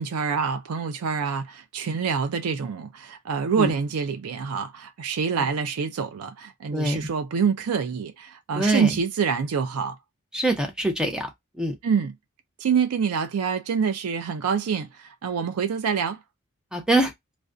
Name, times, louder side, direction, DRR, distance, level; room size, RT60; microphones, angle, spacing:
voice 1, 0.0-10.0 11.8-12.1 12.6-16.2, right 6 dB, 85° right, 0.4 m, -26 dB
voice 2, 8.6-8.9 10.3-11.3 11.6-11.7 16.7-17.1, right 1 dB, 5° right, 0.5 m, -23 dB
2.4 x 2.2 x 2.4 m
head